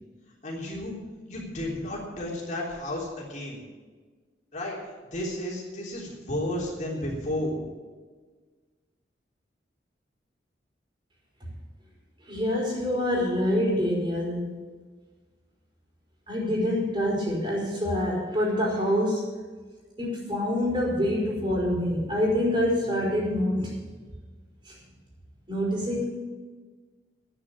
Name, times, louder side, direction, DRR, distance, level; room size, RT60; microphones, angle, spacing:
voice 1, 0.4-1.0 1.3-3.6 4.5-4.8 5.1-7.6, left 1 dB, 45° left, -3 dB, 3.5 m, -32 dB
voice 2, 12.3-14.6 16.3-19.3 20.0-23.7 24.6-24.8 25.5-26.0, left 1 dB, 30° right, -4 dB, 5.1 m, -26 dB
10.0 x 9.8 x 8.9 m, 1.4 s
head